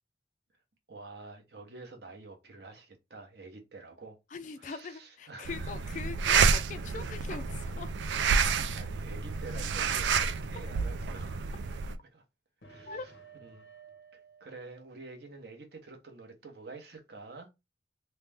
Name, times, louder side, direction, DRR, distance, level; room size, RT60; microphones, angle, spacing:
voice 1, 0.9-4.2 4.6-5.9 8.3-12.2 12.6-13.1 13.4-13.7 14.1-17.5, right 3 dB, 65° right, 0.9 m, -48 dB
voice 2, 4.3-7.9 12.9-13.1, left 4 dB, 45° left, 0.3 m, -42 dB
sound 1, 5.4-12.0, right 5 dB, 85° right, 0.4 m, -29 dB
sound 2, 12.6-15.3, right 5 dB, 85° left, 0.8 m, -55 dB
3.2 x 2.1 x 3.3 m
head